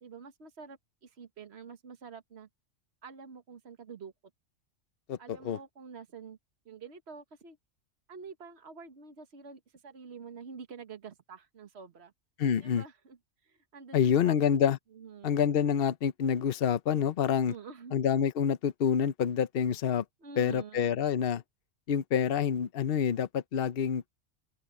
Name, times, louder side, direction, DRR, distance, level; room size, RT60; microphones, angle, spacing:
voice 1, 0.0-2.5 3.0-4.1 5.2-6.4 6.7-7.6 8.1-12.1 12.6-13.2 13.4-14.4 14.9-15.4 17.5-18.0 20.2-20.9, right 5 dB, 60° right, 1.7 m, -47 dB
voice 2, 5.1-5.6 12.4-12.8 13.9-14.8 15.2-17.5 17.9-20.0 20.4-21.4 21.9-24.1, left 8 dB, 55° left, 0.9 m, -27 dB
open air
omnidirectional pair, 1.3 m